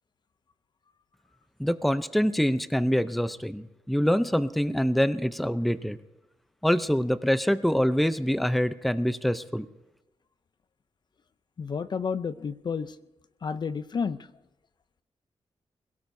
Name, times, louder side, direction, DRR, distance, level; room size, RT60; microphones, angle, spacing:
voice 1, 1.6-6.0 6.6-9.7, equal, ahead, 12 dB, 0.6 m, -25 dB
voice 2, 11.6-13.0 13.4-14.2, left 6 dB, 50° left, 14 dB, 0.6 m, -30 dB
26.5 x 17.0 x 2.7 m, 0.99 s
wide cardioid pair, 100°, 10 cm